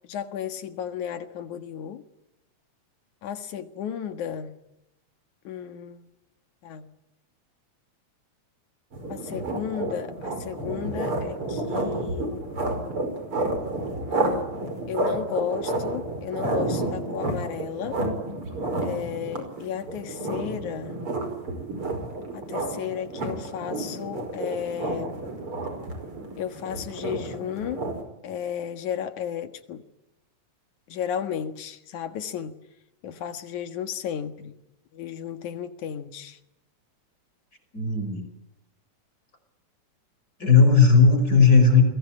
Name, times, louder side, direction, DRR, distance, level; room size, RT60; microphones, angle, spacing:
voice 1, 0.1-2.0 3.2-4.5 5.4-6.0 6.6-6.9 9.1-12.4 14.1-14.6 14.9-18.0 18.8-20.9 22.3-25.2 26.4-27.9 28.2-29.8 30.9-32.5 33.0-34.5 34.9-36.4, left 9 dB, 85° left, 9 dB, 3.1 m, -33 dB
sound 1, 8.9-28.0, right 2 dB, 45° right, 6.1 m, -31 dB
voice 2, 37.7-38.3 40.4-41.8, left 4 dB, 30° left, 7 dB, 5.3 m, -16 dB
30.0 x 22.0 x 8.7 m, 0.83 s
omnidirectional pair, 3.3 m